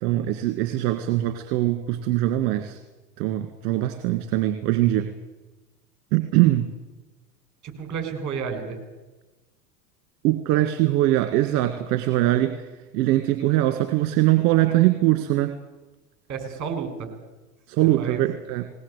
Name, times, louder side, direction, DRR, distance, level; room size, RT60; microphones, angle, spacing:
voice 1, 0.0-2.8 3.2-5.1 6.1-6.7 10.2-12.7 12.9-15.5 17.7-18.7, right 15 dB, 55° right, 8 dB, 2.0 m, -22 dB
voice 2, 7.6-8.8 16.3-17.1 17.8-18.2, right 6 dB, 40° right, 6 dB, 5.7 m, -31 dB
20.0 x 18.5 x 8.2 m, 1.1 s
hypercardioid pair, 105°, 46 cm